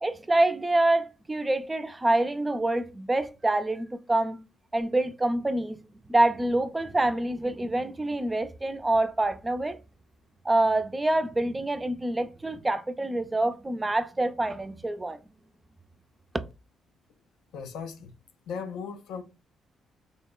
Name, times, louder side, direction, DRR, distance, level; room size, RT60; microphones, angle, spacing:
voice 1, 0.0-4.4 4.7-5.8 6.1-9.8 10.4-15.2, right 2 dB, 15° right, 0.3 m, -26 dB
voice 2, 17.5-18.1 18.5-19.2, left 6 dB, 80° left, 0.4 m, -37 dB
3.6 x 2.0 x 2.2 m
cardioid pair, 90°, 0 cm